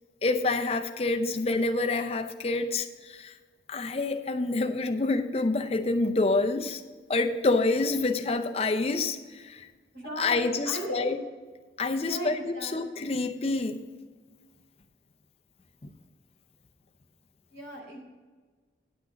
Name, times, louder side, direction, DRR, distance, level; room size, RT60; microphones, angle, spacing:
voice 1, 0.2-3.3 3.7-6.8 7.1-9.7 10.2-11.2 11.8-13.8 15.8-15.9, left 3 dB, 35° left, 6 dB, 0.6 m, -27 dB
voice 2, 9.9-11.1 11.9-13.0 17.5-18.0, right 1 dB, 65° right, -1 dB, 3.2 m, -37 dB
10.0 x 6.1 x 5.1 m, 1.4 s
head